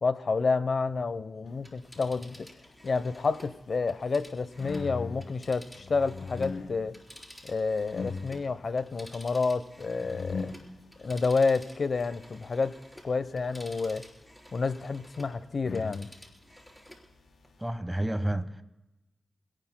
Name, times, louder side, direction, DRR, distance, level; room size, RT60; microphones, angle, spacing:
voice 1, 0.0-2.5 2.8-6.9 7.4-10.5 11.0-12.7 13.0-14.0 14.5-16.1, left 4 dB, 65° left, 0.8 m, -29 dB
Telephone, 1.5-6.6 6.9-15.4 15.7-17.1 17.4-17.5, equal, 5° left, 4.1 m, -52 dB
sound 1, 2.3-17.7, left 4 dB, 85° left, 3.6 m, -43 dB
voice 2, 17.6-18.6, right 1 dB, 10° right, 1.2 m, -30 dB
28.5 x 18.0 x 2.2 m
cardioid pair, 60°, 0 cm